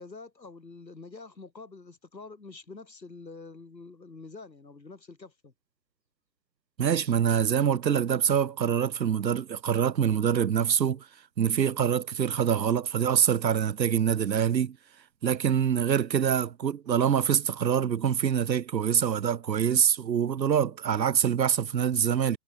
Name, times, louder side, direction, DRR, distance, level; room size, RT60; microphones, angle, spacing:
voice 1, 0.0-5.5, left 3 dB, 85° left, 1.7 m, -46 dB
voice 2, 6.8-11.1 11.4-14.8 15.2-22.4, right 8 dB, 90° right, 0.6 m, -25 dB
figure-of-eight pair, 135°, 50 cm